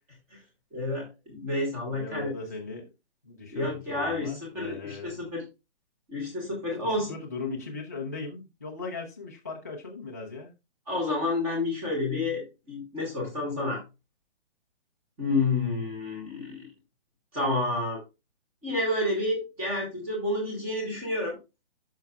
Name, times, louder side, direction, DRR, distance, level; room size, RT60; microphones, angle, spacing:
voice 1, 0.7-2.3 3.5-5.4 6.1-7.2 10.9-13.8 15.2-16.7 17.3-18.0 18.6-21.4, left 2 dB, 5° right, 1.0 m, -29 dB
voice 2, 1.8-2.9 3.2-5.2 6.8-10.5, left 3 dB, 15° left, 0.5 m, -38 dB
11.5 x 5.5 x 2.2 m
hypercardioid pair, 175°, 34 cm